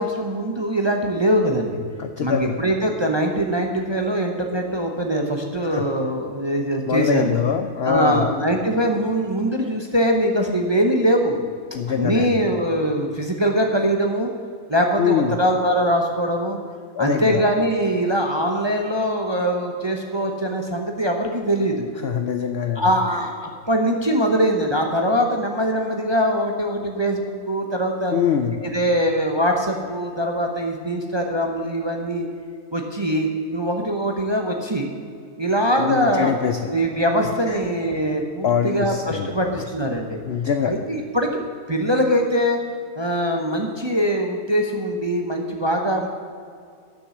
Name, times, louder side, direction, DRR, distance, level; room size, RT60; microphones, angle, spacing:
voice 1, 0.0-1.8 2.2-7.4 7.8-11.4 11.9-14.3 14.7-16.6 17.0-21.9 22.7-28.1 28.5-32.3 32.7-34.9 35.4-36.3 36.7-40.2 40.6-41.3 41.7-42.6 43.0-46.1, equal, 25° right, 2 dB, 0.6 m, -22 dB
voice 2, 2.0-2.6 5.6-5.8 6.9-8.3 11.7-12.3 15.0-15.4 17.0-17.4 22.0-22.8 28.1-28.6 35.8-36.7 38.4-39.5 40.3-40.7, left 7 dB, 65° left, 7 dB, 0.6 m, -23 dB
11.0 x 6.5 x 7.2 m, 2.2 s
omnidirectional pair, 1.6 m